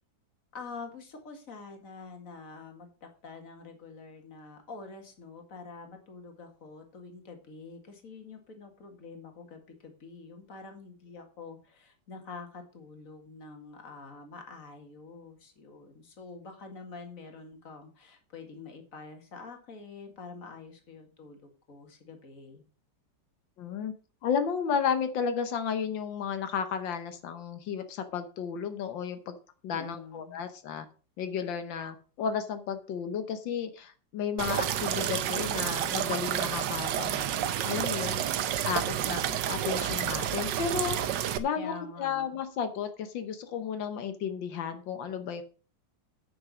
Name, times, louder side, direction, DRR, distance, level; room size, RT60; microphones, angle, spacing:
voice 1, 0.5-22.6 29.7-30.4 41.5-42.4, left 4 dB, 45° left, 5 dB, 2.3 m, -46 dB
voice 2, 23.6-23.9 24.2-29.4 29.6-30.9 31.2-37.2 37.7-38.2 38.7-41.0 41.4-41.7 42.0-45.4, left 7 dB, 90° left, 9 dB, 1.8 m, -33 dB
sound 1, 34.4-41.4, right 10 dB, 80° right, 1.5 m, -30 dB
9.3 x 6.4 x 6.2 m, 0.37 s
omnidirectional pair, 2.0 m